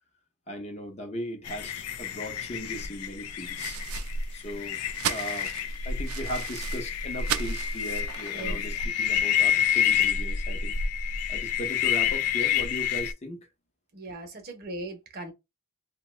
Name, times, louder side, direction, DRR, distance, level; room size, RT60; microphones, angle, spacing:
voice 1, 0.5-3.8 4.3-5.5 5.8-10.8 11.3-13.5, equal, 30° left, 0.6 m, -38 dB
sound 1, 1.4-13.1, left 8 dB, 80° left, 0.4 m, -28 dB
sound 2, 3.6-8.7, right 10 dB, 80° right, 0.4 m, -37 dB
voice 2, 8.3-8.6 13.9-15.3, right 2 dB, 45° right, 0.7 m, -38 dB
2.8 x 2.1 x 3.0 m
head